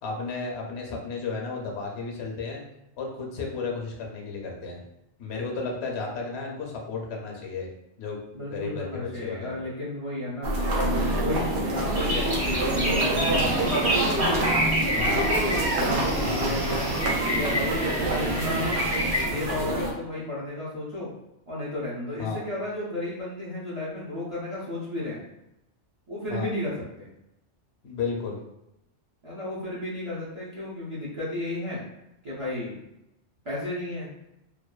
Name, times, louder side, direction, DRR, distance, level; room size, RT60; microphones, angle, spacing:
voice 1, 0.0-2.6 3.0-4.8 5.2-7.7 8.0-8.2 8.5-9.6 14.9-15.2 16.2-16.8 22.2-22.4 26.3-26.5 27.8-28.4, left 4 dB, 70° left, -1 dB, 0.8 m, -33 dB
voice 2, 8.3-14.0 15.0-15.2 15.7-16.9 17.3-18.7 19.2-21.1 21.5-25.2 26.1-27.1 29.2-31.8 32.2-32.8 33.4-34.1, left 1 dB, 40° right, -7 dB, 0.5 m, -33 dB
sound 1, 10.4-19.9, right 1 dB, 75° right, 0.9 m, -26 dB
sound 2, 11.9-19.2, equal, 55° right, 1.2 m, -29 dB
2.6 x 2.2 x 2.3 m, 0.87 s
omnidirectional pair, 1.2 m